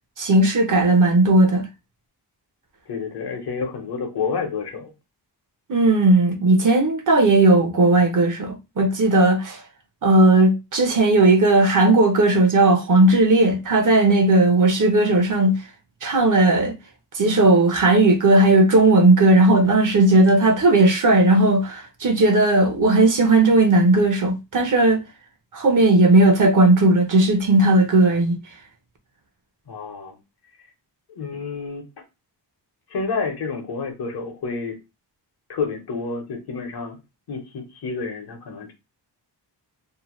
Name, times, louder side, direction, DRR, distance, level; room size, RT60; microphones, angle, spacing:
voice 1, 0.2-1.7 5.7-9.6 10.0-15.6 16.0-16.8 17.1-25.0 25.5-28.4, right 2 dB, 45° right, 0.6 m, -16 dB
voice 2, 2.9-4.9 29.7-30.2 31.1-31.9 32.9-34.8 35.5-37.0 37.3-38.7, left 4 dB, 60° left, 0.9 m, -29 dB
2.8 x 2.1 x 3.0 m
wide cardioid pair, 120°, 43 cm